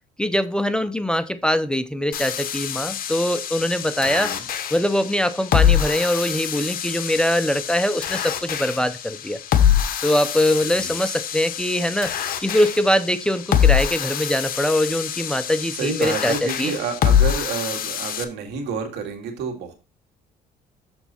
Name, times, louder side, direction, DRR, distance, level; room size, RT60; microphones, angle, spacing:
voice 1, 0.2-4.3 4.7-9.4 10.0-12.1 12.4-16.3 16.6-16.7, left 1 dB, 5° left, 0.6 m, -22 dB
sound 1, 2.1-18.2, left 9 dB, 55° left, 1.1 m, -24 dB
voice 2, 4.0-4.4 10.5-10.9 15.7-19.7, right 6 dB, 85° right, 2.2 m, -29 dB
7.1 x 6.8 x 4.2 m
cardioid pair, 110°, 17 cm